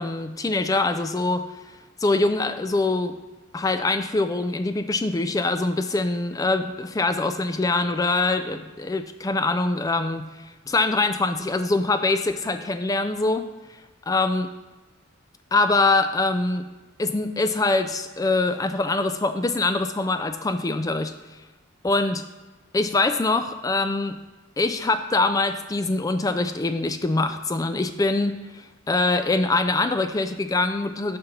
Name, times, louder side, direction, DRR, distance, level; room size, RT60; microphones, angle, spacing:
voice 1, 0.0-1.4 2.0-3.1 3.5-10.3 10.7-13.5 14.1-14.5 15.5-16.6 17.0-21.1 21.8-22.2 22.7-24.2 24.6-31.2, left 2 dB, 15° left, 9 dB, 0.3 m, -23 dB
6.8 x 5.2 x 5.9 m, 1.2 s
head